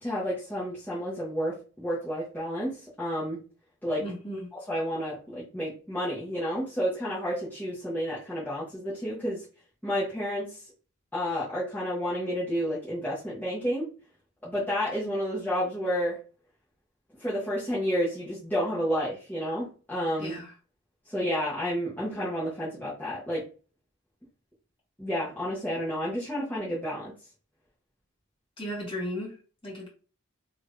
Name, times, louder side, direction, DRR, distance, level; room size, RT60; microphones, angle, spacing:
voice 1, 0.0-3.4 3.8-4.0 4.5-9.4 9.8-10.6 11.1-13.9 14.4-16.2 17.2-20.4 21.1-23.4 25.0-27.1, equal, 10° left, -10 dB, 1.0 m, -30 dB
voice 2, 4.0-4.5 20.2-20.5 28.6-29.3 29.6-29.9, equal, 25° left, -4 dB, 1.5 m, -35 dB
3.5 x 3.0 x 2.4 m, 0.36 s
head